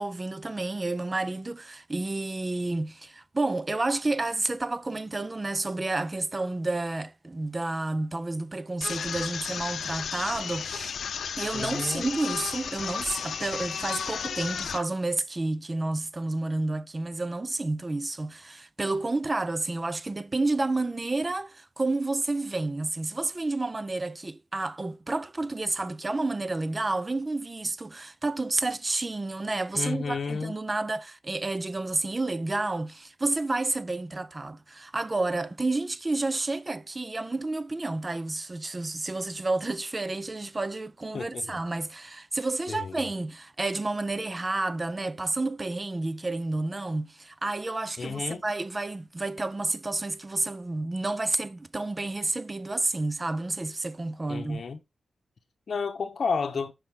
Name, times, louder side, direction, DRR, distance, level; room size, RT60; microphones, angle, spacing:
voice 1, 0.0-11.0 11.4-54.6, right 2 dB, 20° right, 0.4 m, -30 dB
sound 1, 8.8-14.8, left 7 dB, 85° left, 0.6 m, -33 dB
voice 2, 11.5-12.0 29.7-30.5 41.1-41.6 42.7-42.9 48.0-48.4 54.3-54.8 55.7-56.7, left 5 dB, 50° left, 0.9 m, -31 dB
6.2 x 5.1 x 3.6 m
wide cardioid pair, 160°, 0 cm